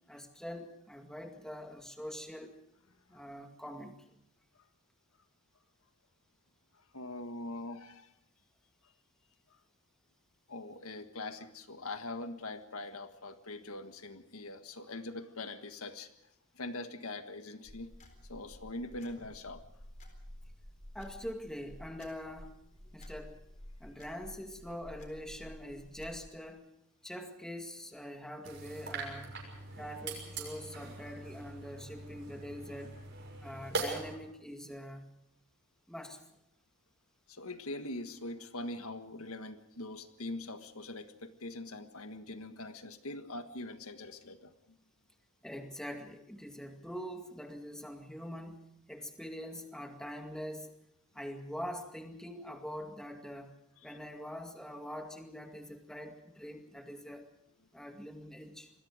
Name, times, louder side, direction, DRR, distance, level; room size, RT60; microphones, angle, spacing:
voice 1, 0.1-2.5 3.1-3.9 20.9-22.6 22.9-23.4 23.8-26.6 27.0-29.3 29.7-32.9 33.4-35.1 35.9-36.2 45.4-48.6 48.9-50.7 51.1-53.5 53.8-57.3 57.7-58.7, equal, 5° left, 4 dB, 2.0 m, -44 dB
voice 2, 6.7-8.1 10.5-16.1 16.5-17.9 18.3-19.7 37.3-44.8 53.8-54.0, left 2 dB, 80° left, 8 dB, 1.6 m, -43 dB
sound 1, 17.7-26.2, left 1 dB, 35° left, 4.0 m, -52 dB
sound 2, 28.4-34.2, right 3 dB, 55° right, 6.3 m, -42 dB
27.0 x 21.0 x 5.0 m, 0.78 s
head